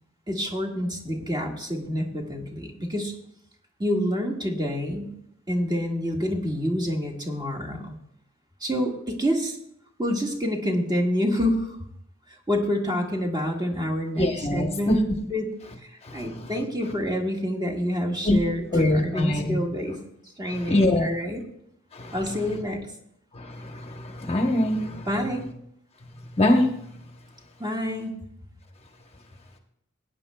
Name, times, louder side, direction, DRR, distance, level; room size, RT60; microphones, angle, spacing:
voice 1, 0.3-3.1 3.8-5.1 5.5-8.0 8.6-9.6 10.0-11.8 12.5-15.5 15.8-20.0 20.4-21.4 22.1-22.9 25.1-25.4 27.6-28.2, equal, 20° right, 0 dB, 1.7 m, -27 dB
voice 2, 14.2-15.2 16.0-16.5 18.2-18.4 18.7-19.6 20.5-21.1 21.9-22.2 23.3-25.1 26.4-26.8, left 1 dB, 30° left, 3 dB, 0.9 m, -23 dB
19.5 x 9.3 x 2.2 m, 0.73 s
head